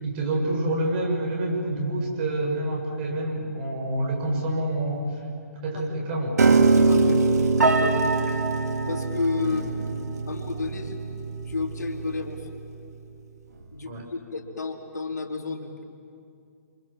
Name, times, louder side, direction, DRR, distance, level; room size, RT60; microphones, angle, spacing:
voice 1, 0.0-5.2 5.6-6.4 9.4-9.6 13.8-14.0, right 1 dB, 35° right, 0 dB, 7.6 m, -27 dB
Piano, 6.4-12.6, right 3 dB, 70° right, 2.5 m, -23 dB
voice 2, 6.9-7.3 7.8-8.4 8.9-9.7 10.3-11.0 11.5-12.5 13.7-15.8, left 4 dB, 85° left, 3 dB, 4.0 m, -31 dB
29.0 x 27.0 x 7.6 m, 2.4 s
hypercardioid pair, 145°, 9 cm